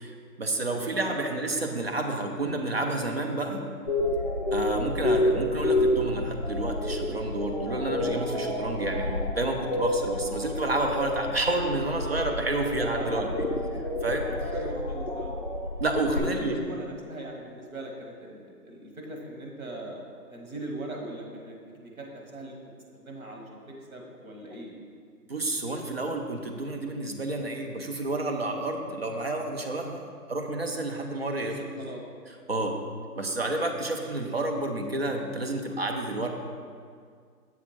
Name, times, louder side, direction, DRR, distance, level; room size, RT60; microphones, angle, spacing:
voice 1, 0.0-3.7 4.5-13.3 14.0-14.3 15.8-16.6 25.3-31.6 32.5-32.8 33.2-36.3, right 2 dB, 40° right, 3 dB, 0.6 m, -30 dB
voice 2, 0.6-1.0 12.6-13.6 14.3-15.4 16.1-20.0 20.3-22.6 23.0-24.7 31.4-32.0 32.5-32.7, right 1 dB, 60° right, 1 dB, 1.5 m, -40 dB
sound 1, 3.9-16.2, left 1 dB, 40° left, 0.4 m, -29 dB
7.2 x 3.6 x 5.9 m, 2.1 s
figure-of-eight pair, 160°, 47 cm